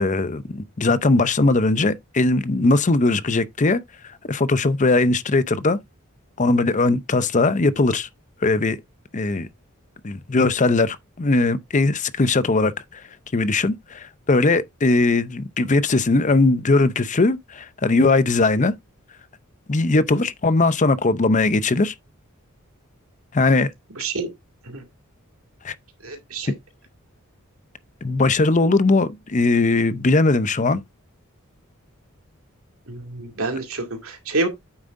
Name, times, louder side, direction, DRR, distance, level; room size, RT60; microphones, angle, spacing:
voice 1, 0.0-3.8 4.3-5.8 6.4-8.1 8.4-8.8 9.1-9.5 10.0-13.0 13.3-18.7 19.7-21.9 23.3-23.7 25.6-25.7 28.0-30.8, left 3 dB, 35° left, 0.6 m, -19 dB
voice 2, 24.0-24.3 24.7-24.8 26.0-26.5 32.9-34.5, right 3 dB, 70° right, 2.3 m, -27 dB
8.9 x 7.2 x 2.6 m
head